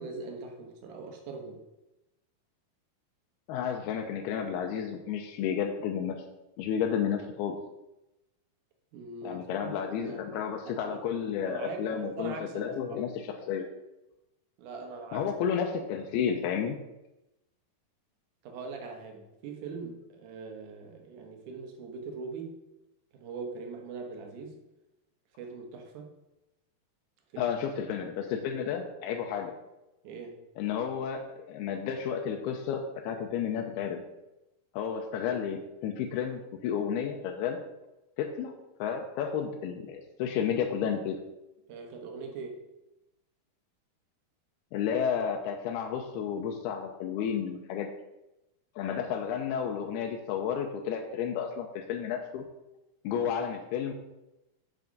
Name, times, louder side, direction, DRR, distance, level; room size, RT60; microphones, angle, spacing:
voice 1, 0.0-1.6 8.9-10.2 10.7-10.9 11.4-13.0 14.6-15.3 18.4-22.5 23.1-24.6 25.4-26.1 27.3-27.6 30.0-30.5 41.7-42.6, right 4 dB, 60° right, 2 dB, 2.4 m, -41 dB
voice 2, 3.5-6.2 6.6-7.6 9.2-13.7 15.1-16.8 27.4-29.5 30.6-34.0 34.7-37.6 38.2-38.5 38.8-41.2 44.7-47.9 48.8-52.4 53.0-53.9, left 7 dB, 80° left, 2 dB, 2.6 m, -32 dB
7.9 x 5.9 x 5.2 m, 0.95 s
omnidirectional pair, 4.6 m